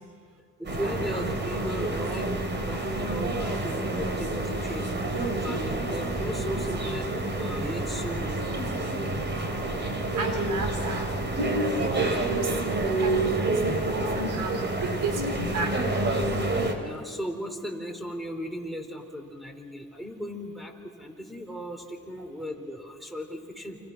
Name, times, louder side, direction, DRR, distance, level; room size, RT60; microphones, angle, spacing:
voice 1, 0.6-2.3 2.6-8.6 16.8-23.8, equal, ahead, 1 dB, 4.4 m, -37 dB
sound 1, 0.6-16.7, right 2 dB, 35° right, 3.8 m, -28 dB
voice 2, 10.1-11.1 11.8-15.8, right 4 dB, 75° right, 6 dB, 3.8 m, -33 dB
29.0 x 26.5 x 6.2 m, 2.1 s
cardioid pair, 85°, 31 cm